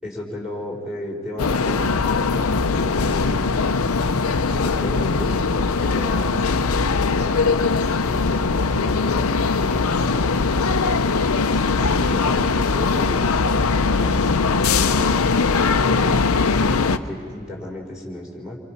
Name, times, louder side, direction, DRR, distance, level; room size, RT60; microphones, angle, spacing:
voice 1, 0.0-3.7 4.2-5.4 5.8-6.6 7.2-9.3 11.5-15.2 16.6-18.6, left 1 dB, 5° right, -3 dB, 4.2 m, -34 dB
sound 1, 1.4-17.0, left 4 dB, 80° left, 0.7 m, -20 dB
28.5 x 24.0 x 5.9 m, 2.2 s
head